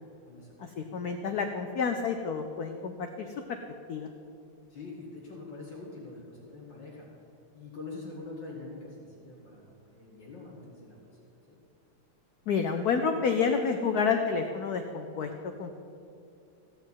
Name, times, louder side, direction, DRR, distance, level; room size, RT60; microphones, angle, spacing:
voice 1, 0.6-3.3 3.9-4.1 12.5-15.7, left 5 dB, 70° left, 6 dB, 0.9 m, -29 dB
voice 2, 4.7-7.1 7.5-11.1 11.5-11.6, left 3 dB, 55° left, -2 dB, 2.5 m, -44 dB
15.5 x 5.3 x 9.0 m, 2.6 s
omnidirectional pair, 2.4 m